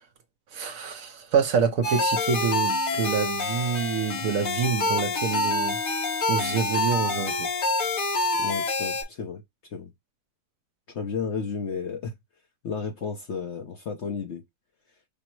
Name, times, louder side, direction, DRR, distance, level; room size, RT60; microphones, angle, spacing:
voice 1, 0.5-5.8 6.3-7.5, right 6 dB, 65° right, 1.0 m, -27 dB
sound 1, 1.8-9.0, left 2 dB, 85° left, 2.2 m, -27 dB
voice 2, 8.3-9.4 9.7-9.9 10.9-12.1 12.6-14.4, left 5 dB, 55° left, 0.8 m, -32 dB
5.3 x 2.0 x 4.4 m
omnidirectional pair, 1.7 m